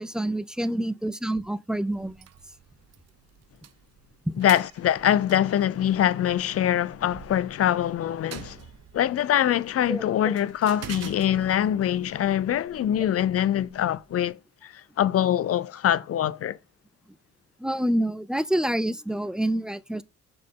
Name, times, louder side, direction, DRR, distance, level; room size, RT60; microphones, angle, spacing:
voice 1, 0.0-2.3 4.3-4.4 9.9-10.4 17.6-20.0, right 1 dB, ahead, 0.4 m, -27 dB
sound 1, 1.9-14.3, right 9 dB, 55° right, 0.8 m, -47 dB
voice 2, 4.4-8.6 8.9-16.6, left 11 dB, 50° left, 0.5 m, -24 dB
6.5 x 4.5 x 3.7 m
cardioid pair, 90°, 30 cm